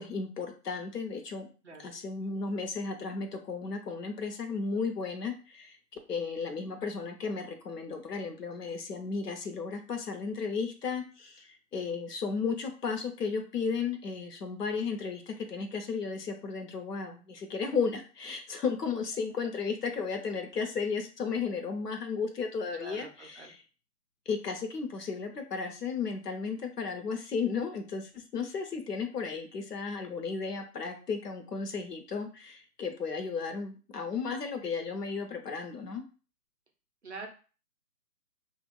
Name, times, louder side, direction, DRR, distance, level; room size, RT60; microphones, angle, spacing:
voice 1, 0.0-1.5 1.8-5.8 6.1-23.1 24.3-36.0, left 5 dB, 75° left, 5 dB, 0.8 m, -34 dB
voice 2, 22.7-23.6 37.0-37.3, right 3 dB, 45° right, 3 dB, 0.5 m, -45 dB
2.4 x 2.2 x 3.1 m, 0.36 s
figure-of-eight pair, 140°, 49 cm